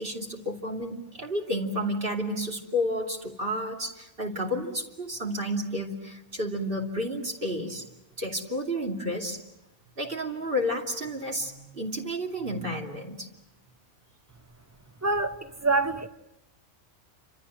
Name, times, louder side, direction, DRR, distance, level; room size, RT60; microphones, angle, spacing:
voice 1, 0.0-7.8 8.2-9.4 10.0-13.3, equal, 45° right, 3.1 m, -31 dB
voice 2, 15.0-16.1, right 3 dB, 15° right, 0.9 m, -26 dB
29.5 x 26.5 x 6.5 m
omnidirectional pair, 1.3 m